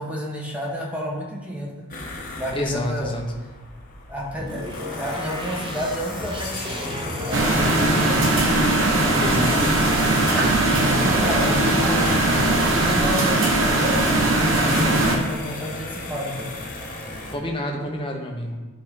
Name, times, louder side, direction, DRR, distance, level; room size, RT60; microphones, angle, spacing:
voice 1, 0.0-3.2 4.1-4.6 4.9-8.4 10.8-16.5, equal, 5° right, -4 dB, 1.3 m, -31 dB
sound 1, 1.9-17.3, left 2 dB, 40° left, 1.1 m, -35 dB
voice 2, 2.5-3.2 9.2-9.9 17.3-18.6, left 1 dB, 25° left, 1 dB, 0.9 m, -29 dB
sound 2, 4.4-12.9, equal, 25° right, 0.8 m, -33 dB
sound 3, 7.3-15.2, right 2 dB, 60° right, 1.1 m, -20 dB
10.5 x 3.8 x 3.8 m, 1.2 s
head